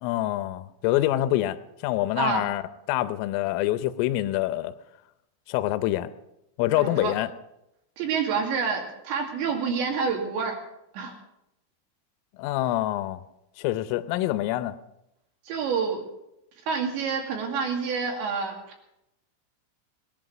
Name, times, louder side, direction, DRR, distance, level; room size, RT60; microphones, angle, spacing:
voice 1, 0.0-1.6 1.8-2.6 2.9-4.7 5.5-6.1 6.6-7.3 12.4-13.2 13.6-14.8, left 15 dB, 85° left, 13 dB, 3.3 m, -26 dB
voice 2, 6.8-7.1 8.0-10.6 10.9-11.1 15.5-16.0 16.7-18.5, right 5 dB, 65° right, 2 dB, 4.3 m, -27 dB
20.0 x 11.5 x 6.0 m, 0.87 s
omnidirectional pair, 5.7 m